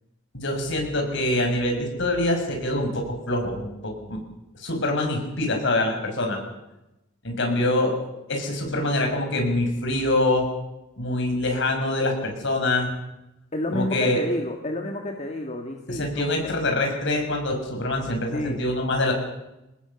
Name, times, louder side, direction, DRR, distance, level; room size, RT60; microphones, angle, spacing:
voice 1, 0.3-4.2 4.5-6.4 7.2-7.9 8.3-10.5 11.0-12.9 13.7-14.2 15.9-19.1, left 1 dB, 60° left, 3 dB, 6.2 m, -25 dB
voice 2, 13.5-16.3 18.3-18.6, left 1 dB, 35° left, 2 dB, 1.8 m, -29 dB
24.0 x 19.5 x 7.1 m, 0.96 s
head